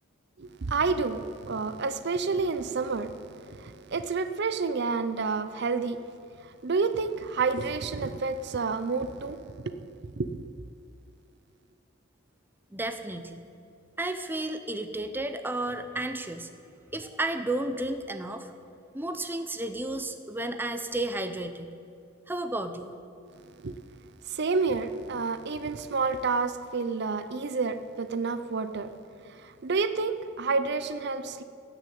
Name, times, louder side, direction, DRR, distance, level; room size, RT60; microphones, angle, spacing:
voice 1, 0.4-6.0 6.4-10.4 23.6-23.8 24.3-28.9 29.3-31.4, right 4 dB, 55° right, 11 dB, 0.6 m, -29 dB
voice 2, 12.7-13.4 14.0-16.5 16.9-18.5 18.9-21.7 22.3-22.9, right 2 dB, 10° right, 8 dB, 0.6 m, -32 dB
16.0 x 6.6 x 8.5 m, 2.5 s
head